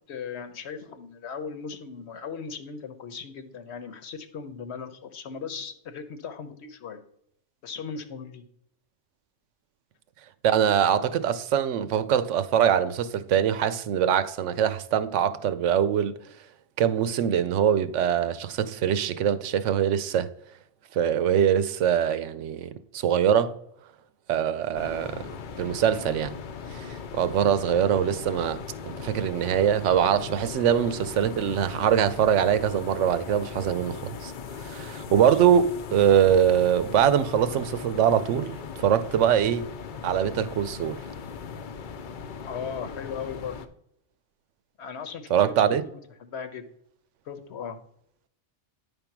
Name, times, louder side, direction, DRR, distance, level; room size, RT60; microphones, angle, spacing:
voice 1, 0.1-7.0 7.6-8.4 28.0-28.1 35.2-35.5 42.4-43.6 44.8-45.8 46.2-46.6 47.2-47.8, left 6 dB, 70° left, 1.1 m, -37 dB
voice 2, 10.4-16.2 16.8-20.3 20.9-23.6 24.3-25.3 25.6-26.3 26.7-34.0 34.2-34.3 34.6-39.7 40.0-41.0 45.3-45.8, right 9 dB, 85° right, 0.9 m, -23 dB
sound 1, 24.7-43.7, left 6 dB, 55° left, 0.7 m, -39 dB
9.4 x 3.6 x 5.9 m
omnidirectional pair, 1.2 m